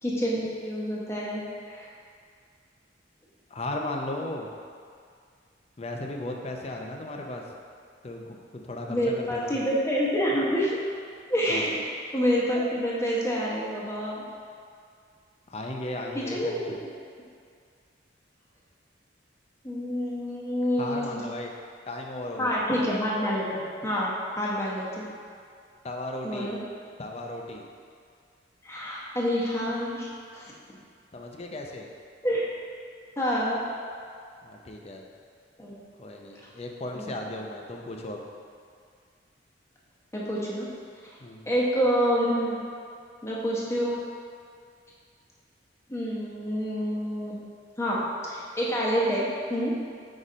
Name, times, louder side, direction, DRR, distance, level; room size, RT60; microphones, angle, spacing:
voice 1, 0.0-1.4 1.7-1.9 8.9-10.8 11.3-11.8 12.1-14.2 16.1-16.7 19.6-21.2 22.4-25.0 26.2-26.6 28.6-30.1 30.3-30.4 32.2-32.5 33.2-33.6 35.6-35.8 36.9-37.0 40.1-40.7 41.5-42.6 43.2-44.0 45.9-47.4 47.8-49.8, equal, 15° left, -5 dB, 0.9 m, -27 dB
voice 2, 3.5-4.5 5.8-7.4 8.0-9.6 11.5-11.7 15.5-16.8 20.8-21.5 21.9-22.6 25.8-26.5 27.0-27.6 31.1-31.9 34.4-35.0 36.0-38.2 41.2-41.4, left 1 dB, 35° left, 1 dB, 0.5 m, -36 dB
4.8 x 4.2 x 5.0 m, 2.2 s
head